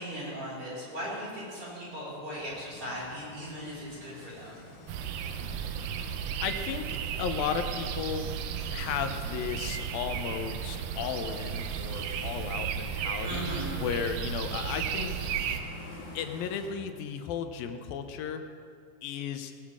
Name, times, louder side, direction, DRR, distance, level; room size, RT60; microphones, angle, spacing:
voice 1, 0.0-4.6 13.2-13.8, equal, 35° right, -8 dB, 5.9 m, -38 dB
sound 1, 2.3-16.7, left 2 dB, 40° left, 2.4 m, -49 dB
sound 2, 4.9-15.6, right 7 dB, 75° right, 2.2 m, -34 dB
voice 2, 5.8-8.3 8.7-13.5 13.8-15.3 15.9-18.4 19.0-19.5, left 7 dB, 75° left, 7 dB, 2.5 m, -35 dB
18.5 x 17.5 x 3.7 m, 2.3 s
omnidirectional pair, 4.3 m